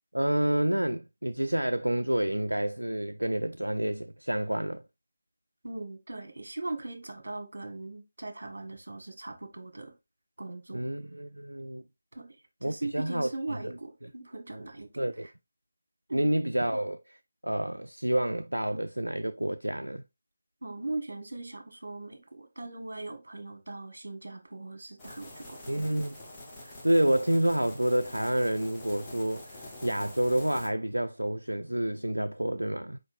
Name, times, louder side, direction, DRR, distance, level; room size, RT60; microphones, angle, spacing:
voice 1, 0.1-4.8 10.7-11.8 12.6-13.3 13.6-13.8 15.0-15.3 16.1-17.0 17.4-20.0 25.7-26.2 26.6-33.0, right 1 dB, 85° right, 0.3 m, -29 dB
voice 2, 5.6-9.9 10.4-10.9 12.1-12.3 12.6-14.9 15.2-15.3 16.1-16.2 20.6-25.6, right 2 dB, 60° right, 1.3 m, -39 dB
sound 1, 25.0-30.7, left 1 dB, 10° left, 1.1 m, -46 dB
4.5 x 4.3 x 2.6 m
figure-of-eight pair, 160°, 0 cm